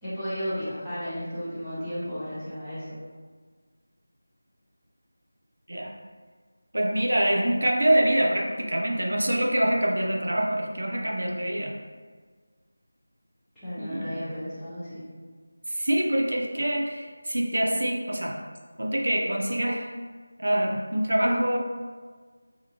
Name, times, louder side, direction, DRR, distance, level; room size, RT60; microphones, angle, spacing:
voice 1, 0.0-3.0 13.6-15.0, equal, 5° left, -17 dB, 0.7 m, -34 dB
voice 2, 6.7-11.8 13.8-14.3 15.7-18.4 18.8-19.9 20.4-21.6, right 1 dB, 80° right, 0 dB, 0.4 m, -25 dB
2.7 x 2.4 x 2.7 m, 1.5 s
figure-of-eight pair, 175°, 0 cm